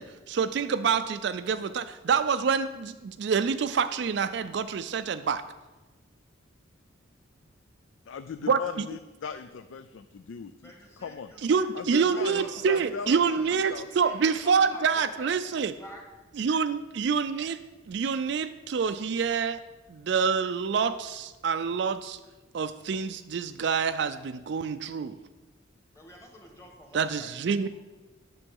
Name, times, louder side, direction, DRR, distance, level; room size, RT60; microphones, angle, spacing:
voice 1, 0.0-5.4 8.5-8.9 11.4-15.7 16.4-17.6 17.9-19.6 19.9-22.2 22.5-25.1 26.9-27.7, right 6 dB, 55° right, 10 dB, 0.3 m, -27 dB
voice 2, 8.1-11.3 11.7-13.1 13.4-13.9, left 6 dB, 70° left, 11 dB, 0.4 m, -39 dB
voice 3, 10.6-11.7 12.1-15.4 15.8-16.0 25.9-27.3 27.6-27.7, left 1 dB, 15° left, 1 dB, 1.6 m, -47 dB
9.8 x 6.7 x 5.3 m, 1.2 s
head